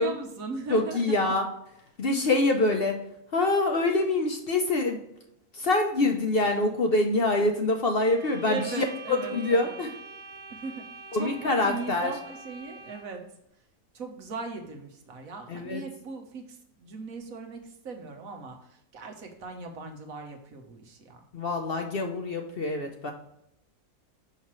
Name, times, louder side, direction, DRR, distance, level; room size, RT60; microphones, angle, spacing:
voice 1, 0.0-1.2 8.5-9.7 10.5-10.8 11.2-13.2 13.9-21.2, right 4 dB, 70° right, 4 dB, 1.4 m, -38 dB
voice 2, 0.7-1.5 2.0-3.0 3.3-5.0 5.5-9.9 11.1-12.1 15.5-15.8 21.3-23.1, left 2 dB, 50° left, 3 dB, 0.8 m, -25 dB
sound 1, 7.9-13.2, right 3 dB, 20° right, 1.0 m, -45 dB
5.8 x 5.7 x 3.1 m, 0.79 s
omnidirectional pair, 1.5 m